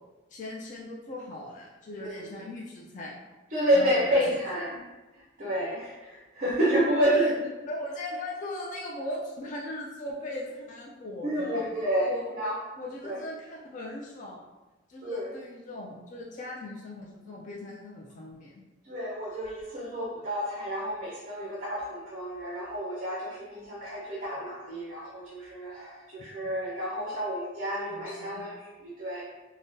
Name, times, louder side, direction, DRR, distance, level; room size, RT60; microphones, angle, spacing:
voice 1, 0.3-3.2 3.7-4.2 6.6-7.3 7.7-11.7 12.0-12.3 12.8-14.4 14.9-18.5 27.9-28.4, left 1 dB, 35° left, -2 dB, 0.3 m, -39 dB
voice 2, 3.5-4.8 5.4-7.3 11.2-12.6 13.0-13.2 15.0-15.3 18.8-29.2, equal, 40° right, -5 dB, 0.5 m, -29 dB
3.6 x 2.1 x 2.6 m, 1.1 s
head